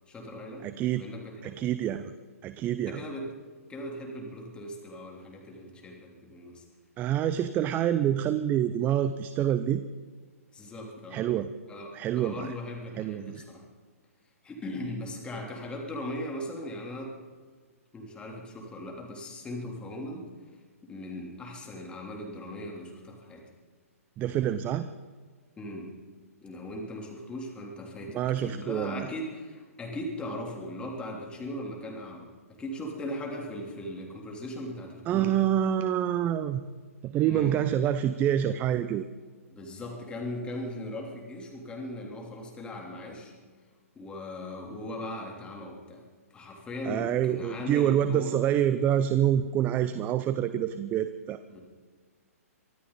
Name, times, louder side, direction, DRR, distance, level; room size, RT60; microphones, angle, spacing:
voice 1, 0.1-1.5 2.9-3.3 3.7-6.6 10.5-11.2 11.7-11.9 12.1-13.6 14.4-17.1 17.9-20.3 20.8-23.4 25.6-25.9 26.4-35.3 37.3-37.6 39.5-43.3 43.9-46.0 46.3-48.4 51.5-51.6, left 1 dB, 10° left, 0 dB, 3.4 m, -38 dB
voice 2, 0.6-1.0 1.4-2.1 2.4-3.0 7.0-9.8 11.1-11.5 11.9-12.5 13.0-13.4 24.2-24.9 28.1-29.1 35.1-36.6 37.0-39.1 46.8-51.4, right 10 dB, 20° right, 12 dB, 0.6 m, -27 dB
24.0 x 14.0 x 4.1 m, 1.5 s
hypercardioid pair, 130°, 8 cm